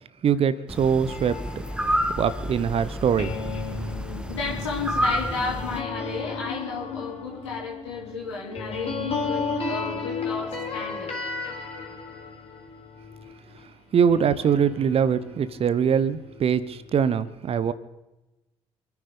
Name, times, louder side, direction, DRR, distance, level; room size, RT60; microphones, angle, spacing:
voice 1, 0.2-1.4 2.2-3.3 13.9-17.7, right 7 dB, 40° right, 0.9 m, -22 dB
sound 1, 0.7-5.8, equal, 5° right, 1.1 m, -30 dB
sound 2, 1.1-13.6 14.1-17.0, left 4 dB, 45° left, 4.0 m, -35 dB
voice 2, 4.2-11.1, left 4 dB, 80° left, 3.9 m, -33 dB
27.5 x 9.8 x 5.2 m
figure-of-eight pair, 45°, 14 cm